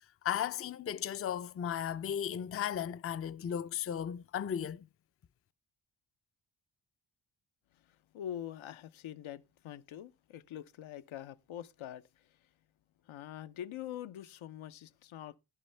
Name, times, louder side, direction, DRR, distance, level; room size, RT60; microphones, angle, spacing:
voice 1, 0.2-4.8, left 9 dB, 30° left, 0.4 m, -35 dB
voice 2, 7.7-12.5 13.0-15.4, left 11 dB, 75° left, 0.7 m, -45 dB
11.0 x 10.5 x 3.3 m
cardioid pair, 60°, 48 cm